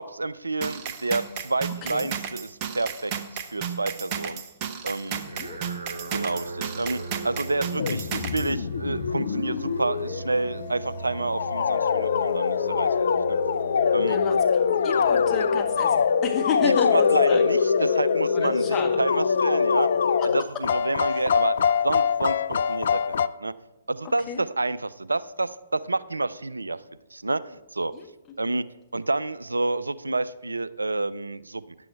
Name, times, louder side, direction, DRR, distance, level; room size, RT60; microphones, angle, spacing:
voice 1, 0.0-3.1 3.5-4.4 4.8-5.2 6.1-13.4 13.9-14.2 16.6-19.9 20.2-23.5 23.9-26.8 27.1-27.9 28.4-28.7 28.9-31.7, right 2 dB, 85° right, 16 dB, 0.3 m, -29 dB
sound 1, 0.6-8.5, right 8 dB, 35° right, 0.9 m, -33 dB
voice 2, 5.1-5.6 14.0-14.4 14.8-15.9 16.2-17.4 18.3-18.9 24.3-24.4 27.9-28.1, left 7 dB, 20° left, -1 dB, 1.7 m, -31 dB
sound 2, 5.1-16.6, right 2 dB, 60° right, 2.6 m, -39 dB
sound 3, 7.8-23.3, left 6 dB, 60° left, 0.3 m, -23 dB
10.5 x 7.7 x 4.5 m, 1.0 s
figure-of-eight pair, 120°, 0 cm